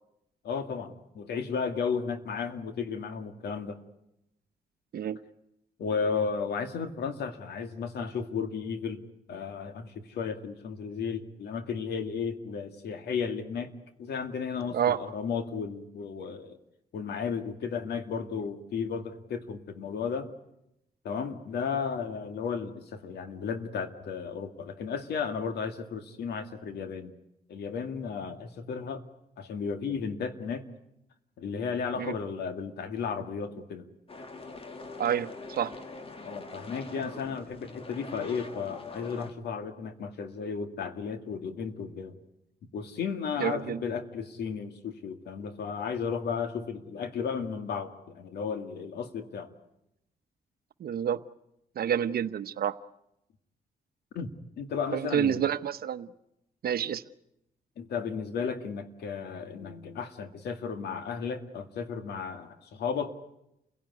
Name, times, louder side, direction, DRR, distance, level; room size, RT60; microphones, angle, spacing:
voice 1, 0.4-3.8 5.8-9.0 9.3-13.7 14.0-16.6 16.9-20.3 21.0-27.1 27.5-29.0 29.4-30.6 31.4-33.9 36.2-42.2 42.7-49.5 54.1-54.3 54.6-55.5 57.8-63.1, left 6 dB, 85° left, 8 dB, 2.1 m, -34 dB
sound 1, 34.1-39.3, left 3 dB, 35° left, 2.0 m, -43 dB
voice 2, 35.0-35.7 43.4-43.8 50.8-51.2 51.8-52.8 54.9-56.1 56.6-57.0, right 9 dB, 65° right, 13 dB, 1.0 m, -28 dB
28.5 x 17.0 x 9.5 m, 0.85 s
cardioid pair, 100°, 17 cm